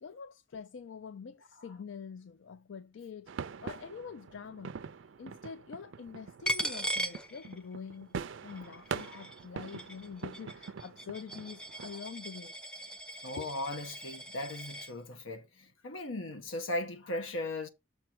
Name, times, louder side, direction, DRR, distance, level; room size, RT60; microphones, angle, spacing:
voice 1, 0.0-3.3 3.6-4.8 5.2-12.6 13.4-13.5, left 6 dB, 65° left, 0.4 m, -45 dB
sound 1, 3.3-11.9, right 6 dB, 70° right, 0.4 m, -44 dB
Coin (dropping), 6.5-7.9 8.3-14.9, equal, 5° left, 0.6 m, -39 dB
voice 2, 13.2-17.7, left 1 dB, 85° left, 1.1 m, -38 dB
6.8 x 4.5 x 4.6 m
head